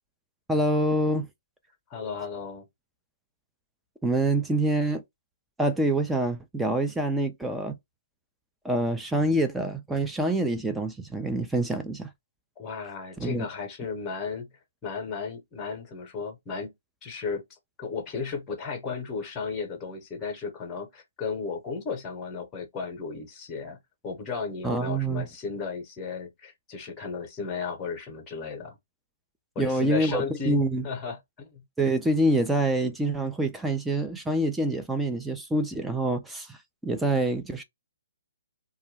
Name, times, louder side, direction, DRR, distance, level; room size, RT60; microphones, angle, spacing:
voice 1, 0.5-1.3 4.0-5.0 5.6-7.8 8.6-12.1 13.2-13.4 24.6-25.3 29.6-30.8 31.8-37.6, right 1 dB, 5° right, 0.3 m, -26 dB
voice 2, 1.9-2.7 12.6-14.5 14.8-16.7 17.0-17.4 17.8-23.8 24.0-28.8 29.5-31.6, left 5 dB, 15° left, 0.8 m, -34 dB
2.2 x 2.1 x 3.2 m
figure-of-eight pair, 135°, 0 cm